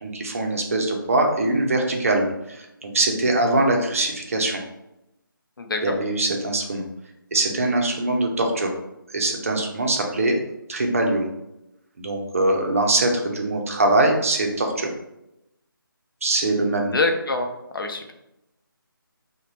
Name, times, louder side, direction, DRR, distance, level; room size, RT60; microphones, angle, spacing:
voice 1, 0.0-4.6 5.8-6.8 7.3-8.7 9.1-10.4 10.7-11.3 12.0-14.9 16.2-16.9, right 2 dB, 40° right, 2 dB, 0.5 m, -22 dB
voice 2, 5.6-6.0 16.9-18.1, left 3 dB, 70° left, 4 dB, 0.5 m, -25 dB
2.5 x 2.1 x 3.0 m, 0.86 s
figure-of-eight pair, 155°, 12 cm